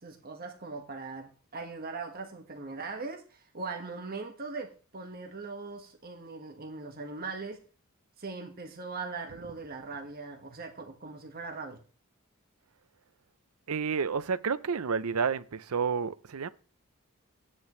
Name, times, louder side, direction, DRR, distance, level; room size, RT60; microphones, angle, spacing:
voice 1, 0.0-7.6 8.2-11.8, right 4 dB, 45° right, 1.6 m, -40 dB
voice 2, 13.7-16.5, right 5 dB, 85° right, 0.6 m, -30 dB
13.0 x 9.9 x 3.2 m
head